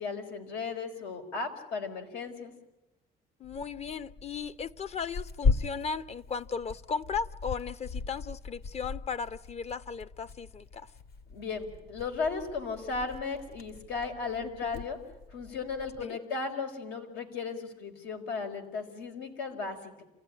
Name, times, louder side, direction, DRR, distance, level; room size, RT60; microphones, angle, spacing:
voice 1, 0.0-2.5 11.3-15.0 15.3-20.0, left 4 dB, 90° left, 4.6 m, -36 dB
Tearing, 3.4-16.1, left 4 dB, 65° left, 2.4 m, -37 dB
voice 2, 3.4-10.9 14.4-14.9 16.0-16.2, left 6 dB, 40° left, 0.8 m, -36 dB
28.0 x 16.0 x 10.0 m
cardioid pair, 110°, 17 cm